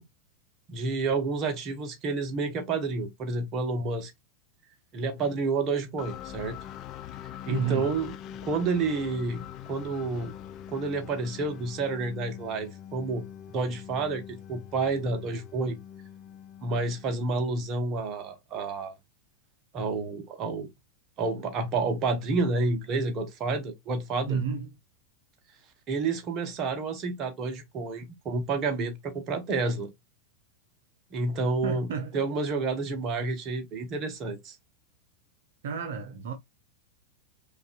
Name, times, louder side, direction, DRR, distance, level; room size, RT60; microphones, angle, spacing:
voice 1, 0.7-4.1 4.9-6.6 7.4-8.1 8.4-10.3 10.7-13.2 13.5-15.8 16.6-19.0 19.7-20.7 21.2-24.4 25.9-29.9 31.1-31.9 32.1-34.6, right 3 dB, 30° right, 0.9 m, -29 dB
sound 1, 6.0-17.8, left 10 dB, 35° left, 0.3 m, -44 dB
voice 2, 7.5-7.9 24.3-24.7 31.6-32.2 35.6-36.3, right 6 dB, 60° right, 0.7 m, -31 dB
5.2 x 2.4 x 2.3 m
figure-of-eight pair, 90°, 0 cm